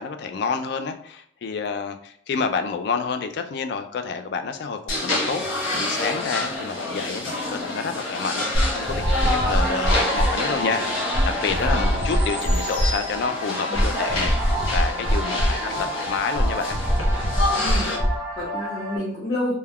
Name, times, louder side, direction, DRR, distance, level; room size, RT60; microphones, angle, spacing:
voice 1, 0.0-5.4 5.8-16.8, left 5 dB, 60° left, 8 dB, 0.3 m, -29 dB
sound 1, 4.9-18.0, left 2 dB, 85° left, 0.7 m, -28 dB
sound 2, 8.5-19.0, equal, 15° right, 0.6 m, -24 dB
voice 2, 17.6-19.5, left 1 dB, 25° left, -9 dB, 0.7 m, -30 dB
2.2 x 2.2 x 3.4 m, 0.62 s
head